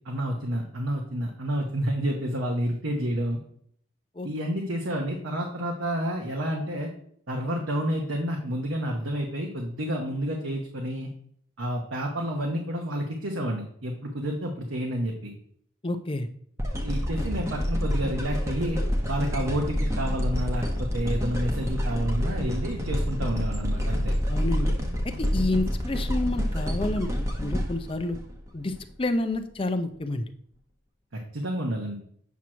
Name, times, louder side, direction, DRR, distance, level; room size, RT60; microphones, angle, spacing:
voice 1, 0.0-3.4 4.2-6.9 7.3-11.1 11.6-15.3 16.8-18.8 19.1-24.1 31.1-32.0, equal, 80° right, 0 dB, 1.1 m, -30 dB
voice 2, 15.8-16.3 24.3-24.7 25.0-28.2 28.5-30.3, left 2 dB, 25° left, 8 dB, 0.5 m, -29 dB
sound 1, 16.6-28.8 29.3-29.4, equal, 15° right, 0.9 m, -28 dB
8.2 x 3.0 x 6.1 m, 0.64 s
head